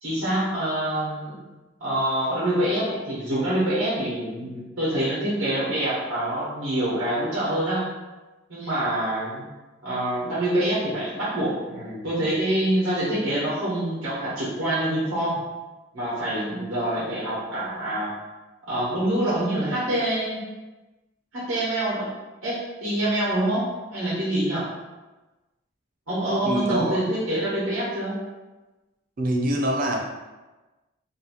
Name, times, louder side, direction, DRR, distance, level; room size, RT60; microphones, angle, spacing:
voice 1, 0.0-1.4 1.8-7.9 8.5-9.4 9.8-15.4 15.9-18.1 18.6-20.5 21.3-22.1 22.4-23.7 23.9-24.7 26.1-28.2, right 1 dB, 80° right, -8 dB, 0.9 m, -26 dB
voice 2, 26.5-27.0 29.2-30.0, right 1 dB, 45° right, 0 dB, 0.4 m, -24 dB
2.6 x 2.3 x 2.8 m, 1.1 s
head